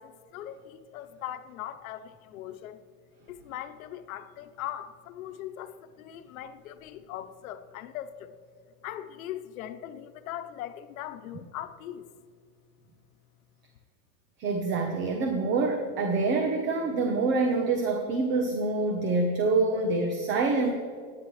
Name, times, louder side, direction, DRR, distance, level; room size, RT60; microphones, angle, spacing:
voice 1, 0.0-2.8 3.3-8.3 8.8-12.1, left 11 dB, 85° left, 9 dB, 1.0 m, -40 dB
voice 2, 14.4-20.7, right 3 dB, 30° right, 4 dB, 0.9 m, -26 dB
28.0 x 9.7 x 3.2 m, 2.2 s
supercardioid pair, 170°, 40 cm